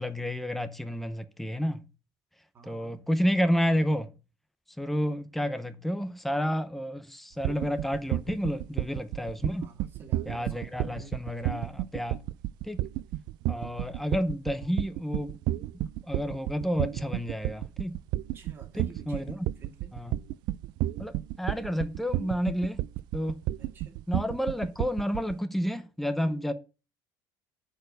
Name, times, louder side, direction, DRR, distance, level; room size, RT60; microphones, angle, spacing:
voice 1, 0.0-1.8 2.6-4.1 4.8-9.7 10.3-12.2 12.6-12.8 13.5-18.0 18.7-19.5 19.9-20.2 21.0-22.8 23.1-23.5 24.1-26.5, equal, ahead, 0.7 m, -30 dB
voice 2, 2.5-3.0 9.6-11.2 13.6-13.9 18.3-20.0 23.6-24.0, right 4 dB, 25° right, 2.2 m, -52 dB
sound 1, 7.4-25.3, right 15 dB, 60° right, 0.4 m, -31 dB
9.1 x 4.7 x 6.5 m
cardioid pair, 160°, 9 cm